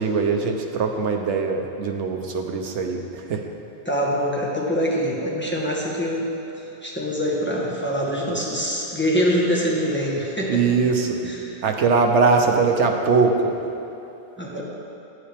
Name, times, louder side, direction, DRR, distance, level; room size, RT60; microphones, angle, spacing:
voice 1, 0.0-3.5 10.5-11.2 11.6-13.6, right 4 dB, 85° right, 3 dB, 1.0 m, -21 dB
voice 2, 3.8-6.3 6.8-10.8 11.2-11.6 14.4-14.6, equal, 10° left, -5 dB, 1.1 m, -24 dB
9.8 x 8.1 x 3.4 m, 2.9 s
omnidirectional pair, 1.2 m